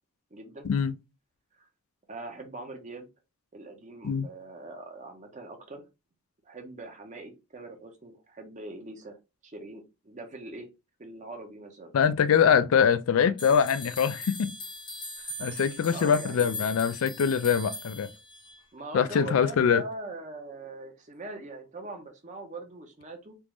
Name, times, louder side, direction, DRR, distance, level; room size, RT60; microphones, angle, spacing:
voice 1, 0.3-0.7 1.5-1.6 2.1-3.1 3.5-5.8 6.4-9.2 9.4-10.7 11.0-11.9 15.9-16.7 18.7-23.4, right 2 dB, 35° right, 0.7 m, -42 dB
voice 2, 11.9-14.5 15.4-18.1 18.9-19.8, left 7 dB, 70° left, 0.3 m, -23 dB
sound 1, 13.4-18.6, left 1 dB, 20° left, 0.6 m, -40 dB
3.4 x 2.5 x 3.0 m
head